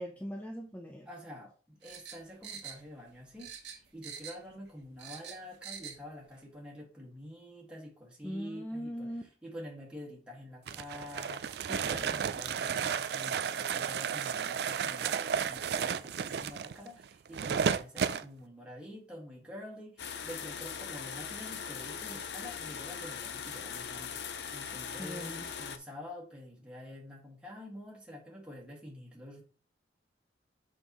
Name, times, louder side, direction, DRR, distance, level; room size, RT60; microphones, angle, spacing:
voice 1, 0.0-1.1 8.2-9.2 11.7-12.2 25.0-25.5, equal, 10° left, 2 dB, 0.6 m, -40 dB
voice 2, 1.1-9.1 9.4-29.4, left 1 dB, 5° right, -3 dB, 1.8 m, -47 dB
sound 1, 1.8-3.1 3.4-4.5 4.8-6.0 6.3-6.4, right 7 dB, 85° right, 1.5 m, -45 dB
sound 2, 10.7-18.2, right 7 dB, 65° right, 0.4 m, -33 dB
sound 3, 20.0-25.8, left 7 dB, 75° left, 0.7 m, -40 dB
6.6 x 5.4 x 3.0 m, 0.38 s
head